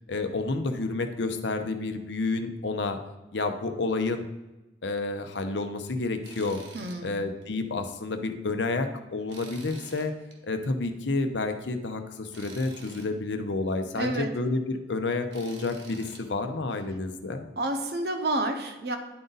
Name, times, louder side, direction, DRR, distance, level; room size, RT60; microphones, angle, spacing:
voice 1, 0.1-3.0 3.3-4.2 4.8-6.6 7.0-10.1 10.4-17.5, left 3 dB, 80° left, 7 dB, 0.7 m, -30 dB
Tools, 6.2-7.0 7.4-7.5 9.3-10.4 12.3-13.1 15.3-16.2, right 3 dB, 90° right, 1.3 m, -47 dB
voice 2, 6.7-7.1 14.0-14.3 17.6-19.0, right 2 dB, 60° right, 6 dB, 0.8 m, -29 dB
10.5 x 3.9 x 4.0 m, 1.0 s
head